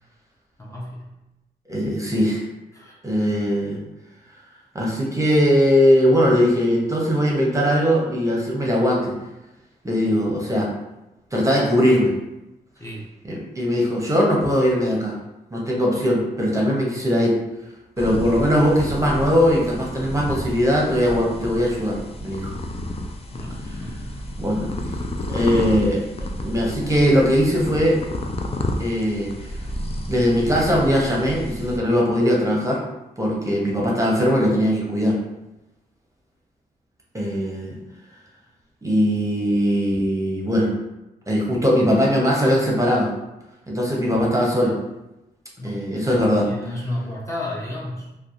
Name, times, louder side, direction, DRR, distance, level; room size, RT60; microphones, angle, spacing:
voice 1, 0.6-1.1 2.7-3.0 12.8-13.1 23.3-24.0 45.6-48.1, left 1 dB, 15° left, -4 dB, 0.7 m, -33 dB
voice 2, 1.7-2.4 3.0-3.8 4.7-9.1 9.8-10.7 11.3-12.1 13.2-15.1 15.5-17.3 18.0-22.5 24.4-24.7 25.3-26.0 26.4-28.0 28.8-29.5 30.1-32.8 33.2-35.2 37.1-37.8 38.8-40.7 41.3-43.1 43.7-44.8 45.6-46.5, equal, 15° right, -3 dB, 0.8 m, -20 dB
sound 1, 18.0-31.8, left 1 dB, 35° left, 0.4 m, -31 dB
2.7 x 2.2 x 2.4 m, 0.96 s
supercardioid pair, 45°, 18 cm